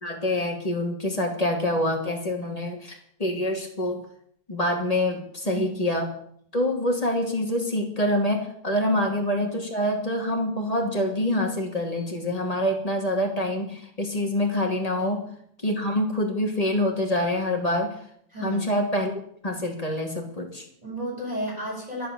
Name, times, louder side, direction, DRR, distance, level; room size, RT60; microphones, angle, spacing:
voice 1, 0.0-4.0 4.5-6.1 6.5-15.2 15.6-17.9 18.4-19.1 19.4-20.6, left 1 dB, 25° left, 2 dB, 2.7 m, -26 dB
voice 2, 18.3-18.6 20.8-22.1, right 1 dB, 25° right, -3 dB, 7.9 m, -32 dB
11.5 x 11.0 x 7.0 m, 0.65 s
omnidirectional pair, 1.7 m